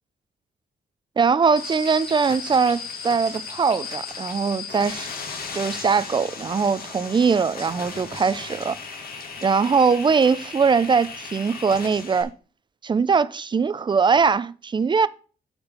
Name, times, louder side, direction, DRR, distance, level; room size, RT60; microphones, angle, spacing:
voice 1, 1.2-5.1 5.5-8.8 9.4-12.3 12.8-15.1, right 5 dB, 25° right, 0.4 m, -21 dB
sound 1, 1.6-12.2, left 5 dB, 60° left, 1.8 m, -36 dB
8.7 x 4.3 x 5.3 m
cardioid pair, 110°, 18 cm